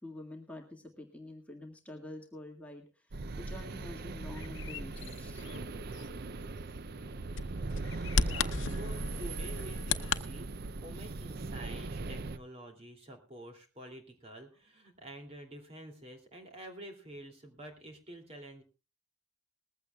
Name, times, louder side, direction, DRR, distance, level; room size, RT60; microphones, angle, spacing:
voice 1, 0.0-5.4, left 1 dB, 5° left, 1 dB, 1.8 m, -47 dB
sound 1, 3.1-12.4, right 3 dB, 55° right, 0.6 m, -39 dB
Bird vocalization bird call bird song, 4.2-10.2, left 5 dB, 85° left, 0.8 m, -37 dB
voice 2, 7.9-18.6, right 1 dB, 35° right, 3 dB, 2.7 m, -49 dB
20.0 x 15.0 x 2.3 m, 0.31 s
head